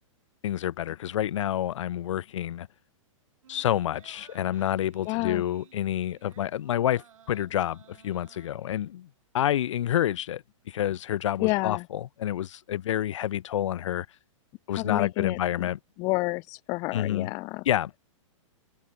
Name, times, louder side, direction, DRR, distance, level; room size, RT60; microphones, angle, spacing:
voice 1, 0.4-2.7 3.5-9.1 9.3-14.1 14.7-15.8 16.9-17.3 17.7-18.0, left 11 dB, 65° left, 1.2 m, -28 dB
sound 1, 3.4-9.1 9.5-9.6, right 9 dB, 80° right, 5.0 m, -57 dB
voice 2, 5.1-5.4 11.4-11.9 14.7-15.7 16.0-17.6, left 25 dB, 20° left, 0.5 m, -29 dB
hypercardioid pair, 160°, 17 cm